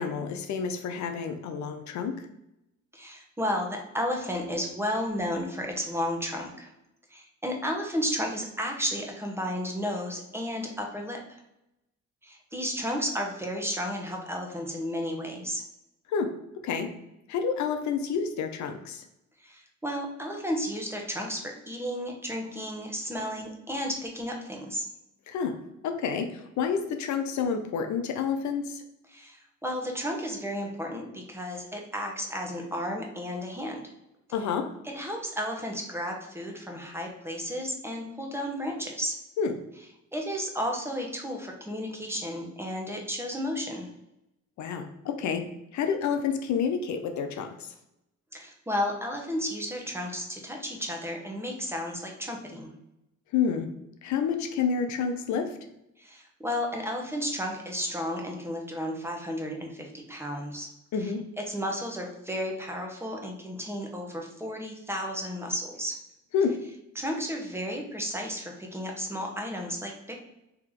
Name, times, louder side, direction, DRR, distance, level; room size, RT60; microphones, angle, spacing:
voice 1, 0.0-2.3 16.1-17.0 17.3-19.0 25.3-28.8 34.3-34.8 39.4-39.5 44.6-47.7 53.3-53.7 54.0-55.6 60.9-61.2 66.3-66.7, left 6 dB, 70° left, 6 dB, 0.5 m, -29 dB
voice 2, 2.9-6.7 7.1-11.2 12.2-15.6 19.4-24.9 29.1-33.9 34.9-39.1 40.1-43.9 48.3-52.7 56.0-60.7 61.0-61.1 61.5-66.0 66.9-70.1, equal, 10° right, 1 dB, 0.9 m, -33 dB
3.4 x 2.8 x 3.6 m, 0.87 s
cardioid pair, 90°, 30 cm